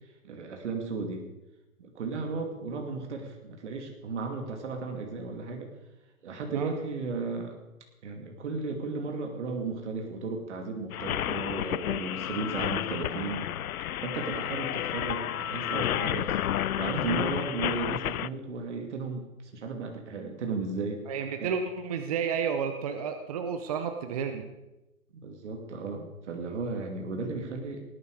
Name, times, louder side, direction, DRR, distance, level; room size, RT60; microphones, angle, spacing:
voice 1, 0.2-1.3 1.8-5.7 6.2-7.6 8.0-13.5 14.0-16.4 16.8-21.1 21.4-21.5 25.1-27.8, right 4 dB, 55° right, 3 dB, 2.5 m, -35 dB
sound 1, 10.9-18.3, left 11 dB, 85° left, 0.6 m, -31 dB
voice 2, 21.1-24.5, right 6 dB, 25° right, 7 dB, 0.8 m, -31 dB
19.0 x 10.5 x 4.8 m, 1.0 s
hypercardioid pair, 155°, 42 cm